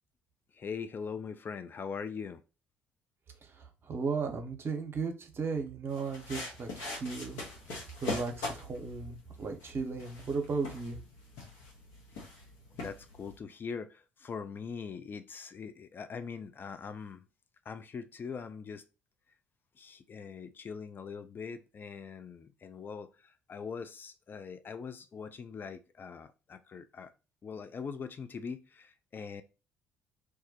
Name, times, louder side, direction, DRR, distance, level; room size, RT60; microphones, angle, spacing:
voice 1, 0.5-2.4 12.7-17.2 17.7-18.8 19.8-27.1 27.4-29.4, left 6 dB, 35° left, 0.4 m, -42 dB
voice 2, 3.4-7.4 8.0-11.0, right 4 dB, 45° right, 0.7 m, -35 dB
sound 1, 5.9-13.4, left 2 dB, 70° left, 0.9 m, -42 dB
2.2 x 2.1 x 2.7 m
hypercardioid pair, 50°, 6 cm